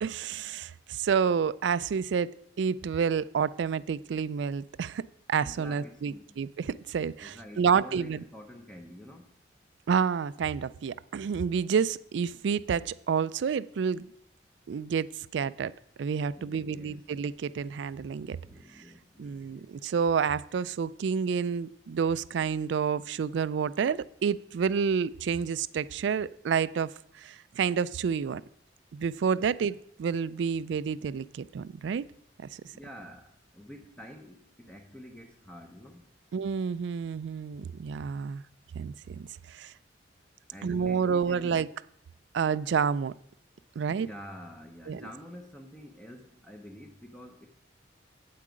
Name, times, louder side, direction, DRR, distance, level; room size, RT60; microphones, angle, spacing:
voice 1, 0.0-2.3 2.6-5.0 5.3-8.2 9.9-14.1 14.7-15.7 16.0-18.4 18.8-18.9 19.2-28.4 28.9-32.1 36.3-38.4 38.7-39.7 40.6-41.7 42.3-43.1 43.8-44.1 44.9-45.1, right 6 dB, 70° right, 19 dB, 0.3 m, -29 dB
voice 2, 5.4-6.4 7.2-9.3 16.3-17.1 18.4-19.7 29.4-29.5 32.7-36.1 40.5-41.7 43.9-47.5, equal, 5° left, 3 dB, 0.6 m, -48 dB
8.5 x 8.4 x 5.0 m, 0.69 s
head